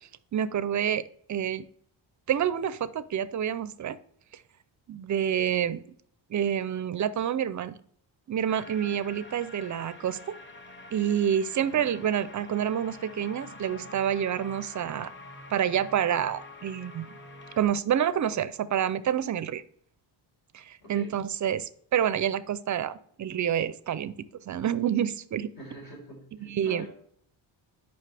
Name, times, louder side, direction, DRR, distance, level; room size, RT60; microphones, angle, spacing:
voice 1, 0.3-1.0 1.3-1.7 2.3-4.0 4.9-5.8 6.3-7.8 8.3-10.2 10.9-15.1 15.5-17.1 17.6-19.6 20.5-24.2 24.5-25.5 26.4-26.9, right 9 dB, 40° right, 15 dB, 0.4 m, -28 dB
sound 1, 8.5-17.6, left 2 dB, 25° left, 1.1 m, -46 dB
voice 2, 11.5-11.9 20.8-21.1 25.6-26.9, equal, 65° left, -1 dB, 3.9 m, -45 dB
10.0 x 5.6 x 3.3 m, 0.63 s
wide cardioid pair, 155°, 48 cm